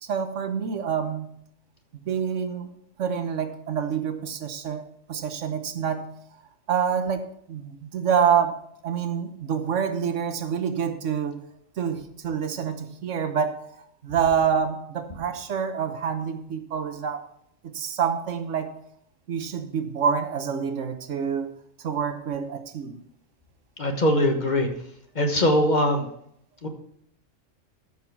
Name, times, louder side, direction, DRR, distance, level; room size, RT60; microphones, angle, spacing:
voice 1, 0.0-1.3 1.9-2.7 3.0-6.1 6.7-11.4 11.8-13.6 14.0-17.3 17.6-18.7 19.3-21.5 21.8-23.0, right 7 dB, 75° right, 9 dB, 1.3 m, -27 dB
voice 2, 23.8-24.7 25.1-26.0 26.6-26.7, left 1 dB, 35° left, 4 dB, 1.3 m, -21 dB
13.5 x 5.9 x 4.7 m, 0.70 s
omnidirectional pair, 1.3 m